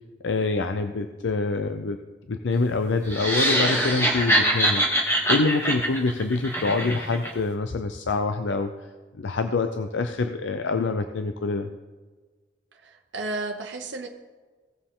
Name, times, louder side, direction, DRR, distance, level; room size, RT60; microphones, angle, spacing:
voice 1, 0.2-2.0 2.3-8.7 9.2-11.7, left 3 dB, 80° left, 8 dB, 0.5 m, -26 dB
sound 1, 3.1-7.3, right 1 dB, 15° left, 1.5 m, -23 dB
voice 2, 4.3-4.6 12.8-14.1, right 2 dB, 75° right, 1 dB, 0.9 m, -33 dB
17.0 x 6.7 x 3.8 m, 1.4 s
head